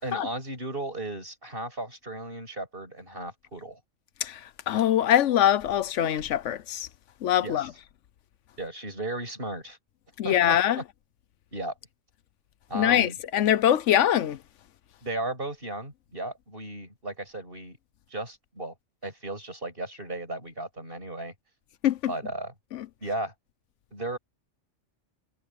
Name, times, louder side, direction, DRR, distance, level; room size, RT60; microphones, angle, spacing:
voice 1, 0.0-3.8 7.4-7.7 8.6-9.8 10.2-10.8 11.5-11.7 12.7-13.2 15.0-17.8 18.1-18.7 19.0-21.3 22.1-22.5 23.0-23.3 23.9-24.2, right 2 dB, 45° right, 6.9 m, -35 dB
voice 2, 4.2-6.9 7.2-7.7 10.2-10.8 12.7-14.4 21.8-22.1 22.7-22.9, left 11 dB, 75° left, 1.0 m, -23 dB
omnidirectional pair, 1.3 m